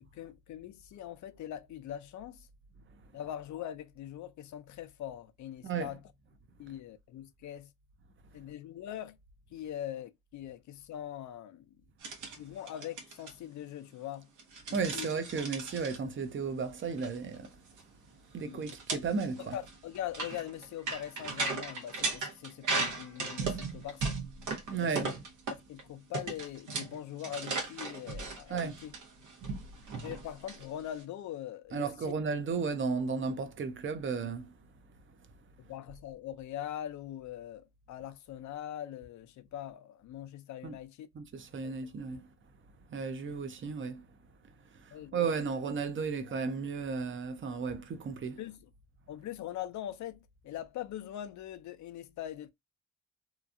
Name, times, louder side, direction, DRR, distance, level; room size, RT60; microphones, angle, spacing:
voice 1, 0.1-2.5 3.1-6.0 6.6-7.7 8.3-9.2 9.5-11.6 12.4-14.3 14.7-15.1 18.4-18.8 19.4-24.2 24.7-25.1 25.5-28.9 30.0-32.1 35.6-41.1 41.6-41.8 44.9-45.2 45.4-45.5 48.4-48.7 49.1-52.5, left 11 dB, 70° left, 0.5 m, -42 dB
sound 1, 12.0-12.4 12.7-13.3 14.4-16.0 16.8-17.1 17.3-17.5 17.8-17.9 18.6-25.8 26.1-31.0, right 4 dB, 80° right, 1.0 m, -37 dB
voice 2, 14.7-17.6 18.3-19.5 24.7-25.1 28.5-28.7 31.7-34.5 40.6-40.7 41.1-42.3 42.9-44.0 44.7-48.4, right 5 dB, 40° right, 0.7 m, -34 dB
2.9 x 2.5 x 2.4 m
cardioid pair, 90°, 30 cm